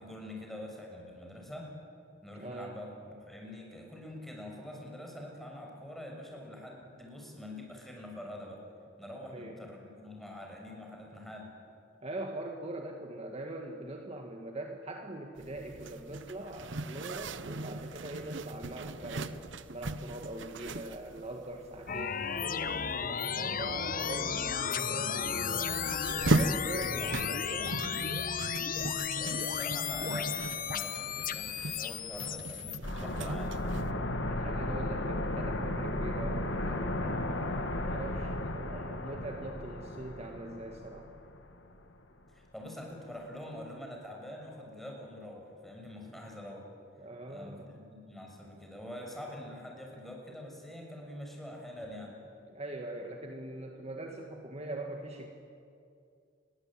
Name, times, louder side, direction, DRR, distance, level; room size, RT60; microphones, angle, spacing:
voice 1, 0.0-1.7 2.2-8.6 9.0-11.5 29.1-33.6 42.3-46.6 47.3-52.1, left 1 dB, ahead, 0 dB, 6.7 m, -45 dB
voice 2, 2.3-2.8 9.2-9.7 12.0-19.4 19.7-25.8 26.3-28.0 34.2-41.1 47.0-47.8 52.5-55.3, right 1 dB, 35° right, 2 dB, 2.0 m, -42 dB
Zipper (clothing), 15.4-33.9, right 2 dB, 75° right, 1.0 m, -38 dB
sound 1, 21.9-32.8, left 7 dB, 50° left, 1.0 m, -34 dB
sound 2, 32.8-41.5 41.8-41.9, left 1 dB, 75° left, 2.2 m, -35 dB
29.5 x 22.5 x 9.0 m, 2.5 s
head